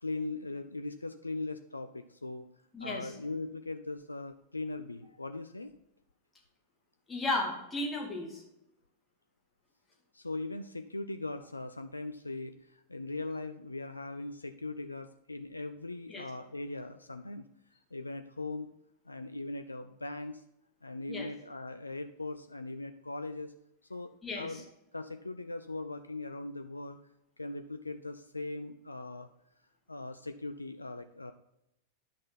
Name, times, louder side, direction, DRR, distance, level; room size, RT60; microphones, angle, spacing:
voice 1, 0.0-2.5 2.8-5.7 10.1-17.4 17.9-18.7 19.1-20.4 20.8-23.5 23.9-24.6 24.9-27.0 27.4-29.3 29.9-31.3, left 2 dB, 80° left, 9 dB, 0.4 m, -40 dB
voice 2, 2.7-3.1 7.1-8.4 16.1-16.2 21.1-21.3 24.2-24.6, left 2 dB, 15° left, -1 dB, 2.5 m, -34 dB
10.0 x 6.1 x 4.1 m, 0.85 s
figure-of-eight pair, 90°, 0 cm